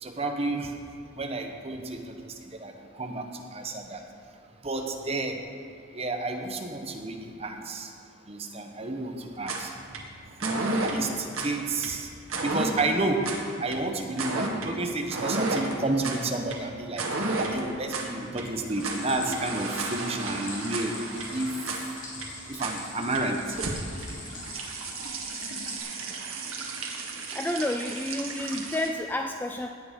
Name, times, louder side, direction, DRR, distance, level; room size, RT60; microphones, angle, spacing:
voice 1, 0.0-0.7 1.1-2.3 2.6-2.7 3.0-3.2 3.5-4.0 4.6-5.4 5.9-7.9 8.3-9.7 10.4-12.1 12.4-13.3 13.6-17.1 17.5-20.9 21.3-21.6 22.5-23.4, right 2 dB, 30° right, 3 dB, 1.1 m, -31 dB
sound 1, 9.3-28.9, right 3 dB, 80° right, 1.8 m, -33 dB
Stream, 18.8-25.8, left 3 dB, 65° left, 3.5 m, -43 dB
voice 2, 27.3-29.7, left 1 dB, 10° left, 4 dB, 0.3 m, -30 dB
17.0 x 8.8 x 5.2 m, 2.3 s
head